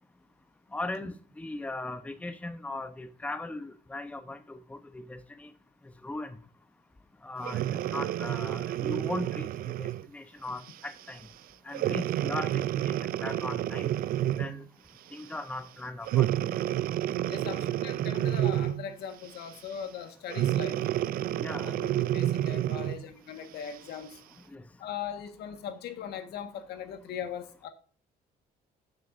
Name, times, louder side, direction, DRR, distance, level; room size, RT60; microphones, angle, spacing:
voice 1, 0.7-5.5 6.0-6.4 7.2-9.5 9.8-11.2 11.7-12.9 13.2-13.9 14.4-14.6 15.1-16.5 21.4-21.8 24.5-24.6, left 2 dB, 10° left, 0.8 m, -38 dB
Breathing, 7.4-10.1 10.7-10.9 11.7-14.6 16.0-18.9 20.3-23.0 23.7-23.8, right 13 dB, 60° right, 0.4 m, -29 dB
voice 2, 17.3-20.8 21.6-24.2 24.8-27.7, left 8 dB, 75° left, 1.5 m, -40 dB
16.0 x 6.7 x 2.6 m
cardioid pair, 110°, 17 cm